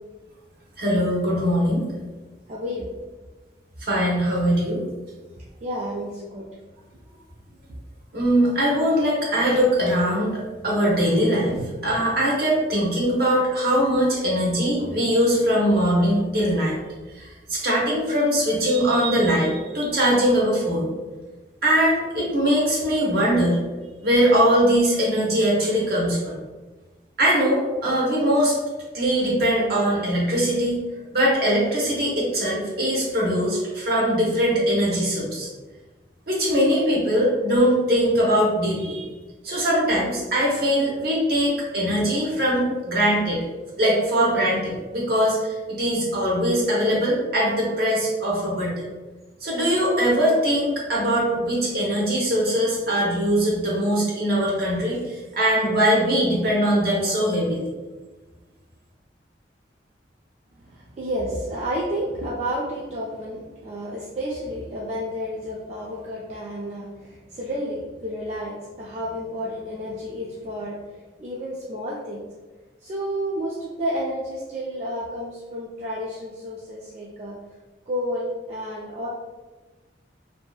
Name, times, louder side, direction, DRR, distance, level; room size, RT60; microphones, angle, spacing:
voice 1, 0.8-1.9 3.8-4.8 8.1-16.8 17.2-20.9 21.6-23.6 24.0-26.4 27.2-28.6 28.9-30.8 31.1-35.5 36.3-39.1 39.4-43.4 43.8-48.8 49.4-57.7, equal, 60° right, -4 dB, 0.8 m, -21 dB
voice 2, 2.5-2.9 5.6-6.4 60.7-70.8 71.2-72.2 72.8-77.4 77.9-79.1, equal, 40° right, -5 dB, 0.3 m, -31 dB
2.6 x 2.2 x 2.3 m, 1.2 s
head